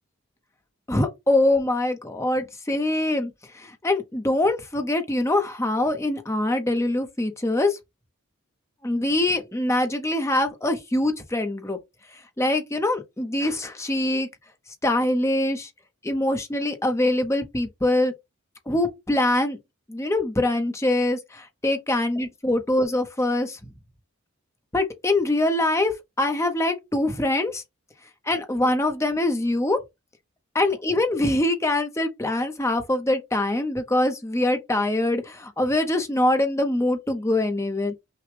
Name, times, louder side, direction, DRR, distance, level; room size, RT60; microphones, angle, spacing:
voice 1, 0.9-7.8 8.8-11.8 12.4-14.3 14.8-15.7 16.0-18.1 18.7-19.6 19.9-23.6 24.7-27.6 28.2-29.8 30.5-37.9, left 1 dB, 15° left, 0.7 m, -24 dB
5.9 x 2.3 x 3.3 m
head